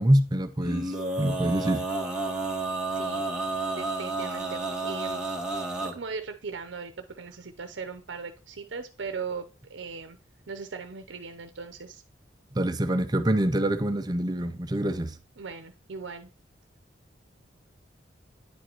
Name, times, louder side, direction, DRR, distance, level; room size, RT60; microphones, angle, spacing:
voice 1, 0.0-1.9 12.5-15.2, right 1 dB, 20° right, 0.5 m, -25 dB
Male singing, 0.6-5.9, right 3 dB, 5° right, 1.4 m, -31 dB
voice 2, 2.9-3.2 3.8-5.2 5.5-10.2 10.5-12.0 15.4-16.3, right 5 dB, 75° right, 0.7 m, -39 dB
10.0 x 5.2 x 2.9 m
head